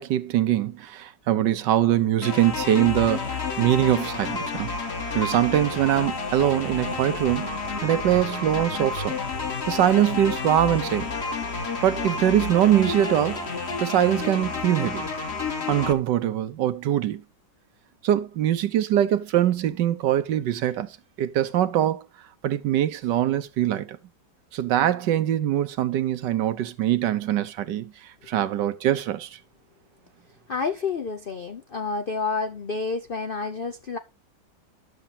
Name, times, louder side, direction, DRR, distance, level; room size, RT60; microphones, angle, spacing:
voice 1, 0.0-4.7 5.1-7.5 7.8-9.1 9.7-11.1 11.8-13.5 13.8-15.1 15.7-17.2 18.0-22.1 22.4-24.0 24.5-27.9 28.3-29.4, right 11 dB, 75° right, 1.4 m, -23 dB
sound 1, 2.2-15.9, left 4 dB, 40° left, 1.6 m, -30 dB
voice 2, 30.5-34.0, left 4 dB, 60° left, 0.5 m, -29 dB
11.0 x 7.0 x 4.2 m
omnidirectional pair, 1.9 m